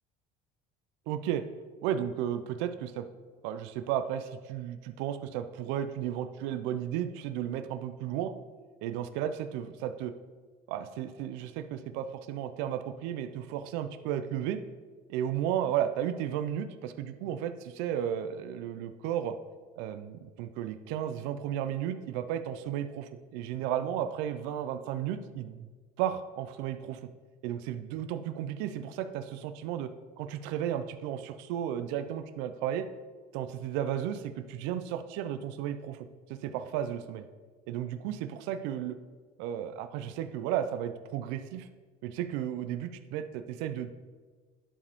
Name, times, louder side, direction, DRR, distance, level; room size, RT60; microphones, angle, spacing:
voice 1, 1.1-1.4 1.8-3.1 3.4-8.3 8.8-10.1 10.7-14.6 15.1-19.4 19.8-25.7 26.0-27.1 27.4-29.9 30.2-32.9 33.3-37.3 37.7-39.0 39.4-41.7 42.0-43.9, right 10 dB, 85° right, 9 dB, 0.4 m, -34 dB
11.0 x 4.9 x 3.5 m, 1.5 s
cardioid pair, 155°, 18 cm